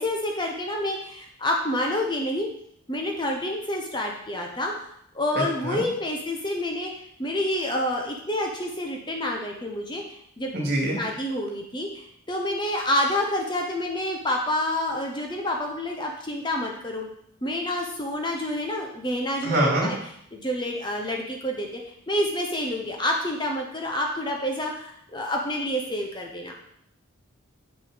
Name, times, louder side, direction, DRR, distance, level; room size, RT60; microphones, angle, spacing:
voice 1, 0.0-2.5 2.9-4.7 5.1-10.5 11.0-17.1 17.4-20.0 20.3-21.8 22.1-26.5, left 1 dB, 20° left, 1 dB, 0.9 m, -28 dB
voice 2, 5.3-5.8 10.5-11.0 19.4-19.9, right 1 dB, 50° right, -1 dB, 2.5 m, -24 dB
7.6 x 6.6 x 5.1 m, 0.69 s
head